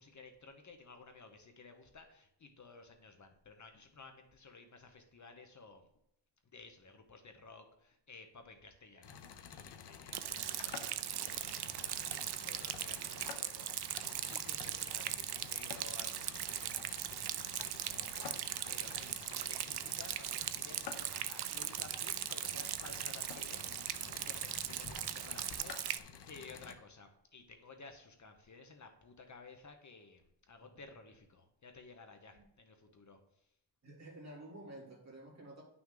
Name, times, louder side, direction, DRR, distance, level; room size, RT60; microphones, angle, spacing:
voice 1, 0.0-5.8 6.4-17.6 17.9-33.5, left 3 dB, 45° left, 6 dB, 0.8 m, -55 dB
sound 1, 9.0-26.8, left 7 dB, 70° left, 0.8 m, -50 dB
Rain, 10.1-26.0, right 11 dB, 65° right, 0.5 m, -39 dB
voice 2, 33.8-35.6, right 1 dB, 40° right, -4 dB, 3.0 m, -51 dB
10.0 x 6.0 x 3.8 m, 0.75 s
wide cardioid pair, 165°, 42 cm